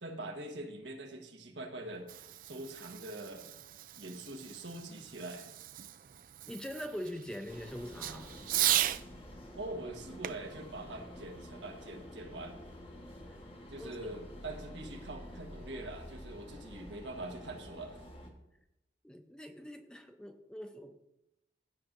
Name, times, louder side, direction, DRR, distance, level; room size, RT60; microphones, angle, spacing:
voice 1, 0.0-3.5 4.0-5.5 9.5-12.6 13.7-18.0, right 2 dB, 80° right, 3 dB, 1.4 m, -44 dB
Fireworks, 1.8-9.1 10.2-11.9, right 12 dB, 50° right, 0.3 m, -37 dB
voice 2, 6.5-8.3 13.3-13.4 13.8-13.9 19.0-20.9, equal, 5° left, 5 dB, 0.6 m, -43 dB
sound 1, 7.5-18.3, left 1 dB, 30° left, 1.3 m, -49 dB
15.5 x 7.5 x 2.6 m, 0.88 s
head